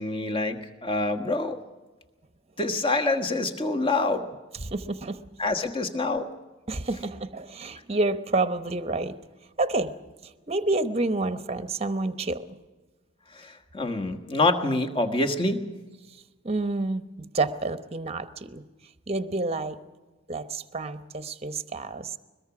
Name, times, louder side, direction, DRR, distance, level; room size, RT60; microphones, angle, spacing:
voice 1, 0.0-1.6 2.6-4.3 5.4-6.3 13.3-15.6, left 2 dB, 25° left, 4 dB, 1.5 m, -26 dB
voice 2, 4.5-5.2 6.7-9.1 9.6-9.9 10.2-12.5 16.4-18.6 19.1-19.8 20.3-22.2, right 2 dB, 30° right, 11 dB, 0.9 m, -29 dB
22.0 x 21.5 x 6.1 m, 1.2 s
head